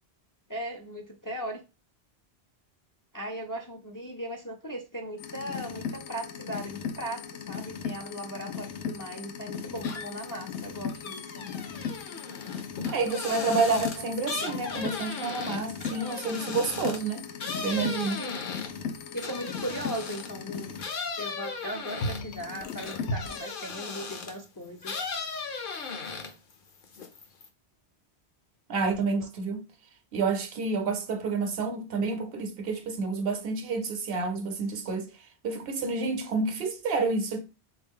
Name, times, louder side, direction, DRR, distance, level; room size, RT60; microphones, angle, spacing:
voice 1, 0.5-1.6 3.1-11.5 18.2-18.4 19.1-20.8 21.2-25.0, equal, 30° left, 0.4 m, -38 dB
sound 1, 5.2-20.8 22.0-23.4, left 5 dB, 85° left, 0.9 m, -37 dB
sound 2, 9.8-10.3 10.7-20.4 20.8-24.4 24.8-26.5 26.8-27.5, left 4 dB, 55° left, 0.8 m, -37 dB
voice 2, 12.9-17.3 17.6-18.2 28.7-29.7 30.1-35.1 35.4-37.4, right 4 dB, 65° right, 0.9 m, -29 dB
3.6 x 2.8 x 3.6 m
omnidirectional pair, 1.1 m